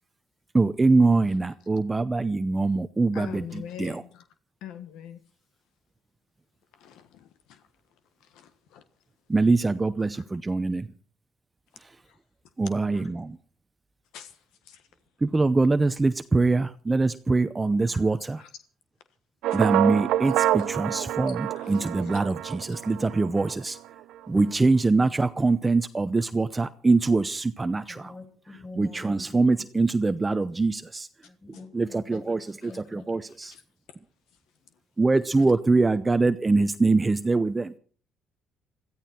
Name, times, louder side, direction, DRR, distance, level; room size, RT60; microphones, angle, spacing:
voice 1, 0.5-4.0 9.3-10.9 12.6-13.4 15.2-18.4 19.5-23.8 24.3-28.1 28.8-31.1 31.7-33.5 35.0-37.7, right 3 dB, 20° right, 0.7 m, -23 dB
voice 2, 3.1-4.2 4.6-5.2 6.8-7.6 8.3-8.8 10.1-10.2 12.9-13.0 14.1-14.3 14.7-14.8 18.4-18.5 20.2-20.7 21.3-21.8 22.1-22.2 31.5-31.6 32.6-32.7 33.4-33.6, left 9 dB, 85° left, 1.4 m, -44 dB
sound 1, 19.4-23.6, right 13 dB, 80° right, 0.8 m, -27 dB
voice 3, 27.9-29.4 31.2-32.3 32.7-33.0, left 3 dB, 25° left, 7.5 m, -45 dB
22.0 x 14.0 x 4.4 m
cardioid pair, 105°, 0 cm